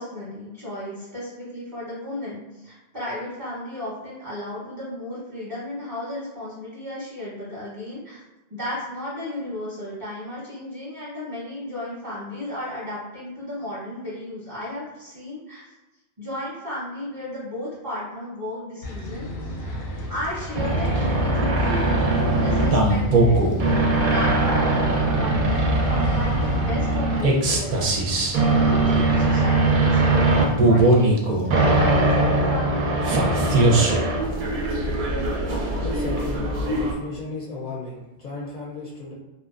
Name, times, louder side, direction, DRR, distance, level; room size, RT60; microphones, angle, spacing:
voice 1, 0.0-8.2 8.5-15.6 16.2-19.8 20.1-21.8 22.3-23.5 24.0-27.8 28.4-33.3, left 1 dB, 20° right, -10 dB, 0.7 m, -34 dB
sound 1, 18.8-31.1, left 2 dB, 90° left, 0.9 m, -31 dB
sound 2, 20.5-36.9, right 2 dB, 60° right, 0.6 m, -21 dB
voice 2, 35.8-39.1, left 2 dB, 55° left, -4 dB, 0.5 m, -35 dB
2.7 x 2.1 x 2.4 m, 1.1 s
omnidirectional pair, 1.1 m